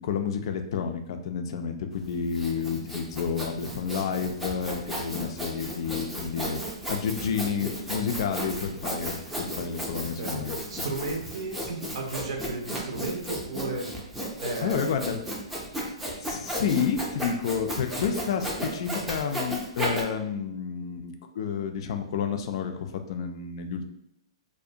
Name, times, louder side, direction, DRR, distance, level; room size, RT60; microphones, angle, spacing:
voice 1, 0.0-6.6 6.9-10.6 14.6-15.2 16.2-23.9, left 6 dB, 60° left, 6 dB, 0.3 m, -30 dB
Sawing, 2.0-20.0, equal, 5° right, 0.5 m, -34 dB
voice 2, 10.0-13.9 14.4-15.2, right 3 dB, 65° right, 2 dB, 0.6 m, -34 dB
2.5 x 2.1 x 2.7 m, 0.76 s
hypercardioid pair, 135°, 3 cm